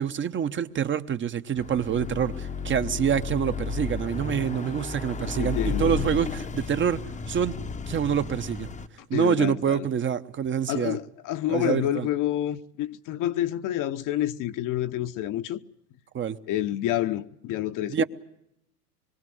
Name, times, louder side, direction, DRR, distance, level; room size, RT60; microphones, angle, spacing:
voice 1, 0.0-7.5 7.9-8.7 9.1-11.0 11.5-12.1 16.1-16.4 17.9-18.0, right 8 dB, 25° right, 1.0 m, -26 dB
Car passing by / Accelerating revving vroom, 1.6-8.9, left 5 dB, 15° left, 1.0 m, -33 dB
voice 2, 5.4-6.0 9.1-9.9 10.7-15.6 16.5-18.0, left 13 dB, 40° left, 1.1 m, -28 dB
25.0 x 22.5 x 7.9 m
hypercardioid pair, 110°, 46 cm